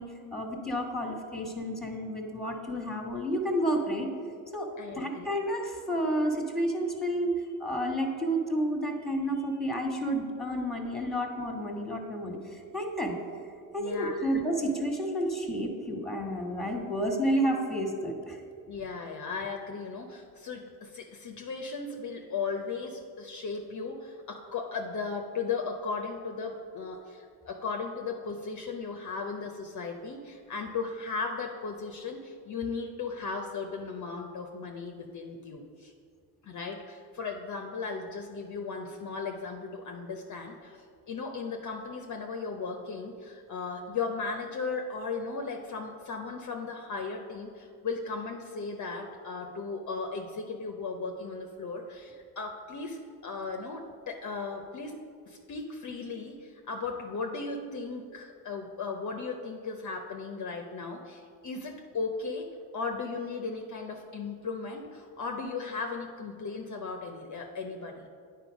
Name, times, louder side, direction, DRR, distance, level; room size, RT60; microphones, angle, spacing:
voice 1, 0.0-4.1 4.5-4.7 4.9-7.3 7.6-13.1 13.7-18.4, equal, ahead, 1 dB, 1.5 m, -30 dB
voice 2, 4.8-5.3 13.8-14.2 18.7-35.9 36.4-55.0 55.3-62.5 62.7-68.0, left 4 dB, 40° left, 3 dB, 0.8 m, -36 dB
9.1 x 4.4 x 5.1 m, 2.2 s
supercardioid pair, 65°, 45 cm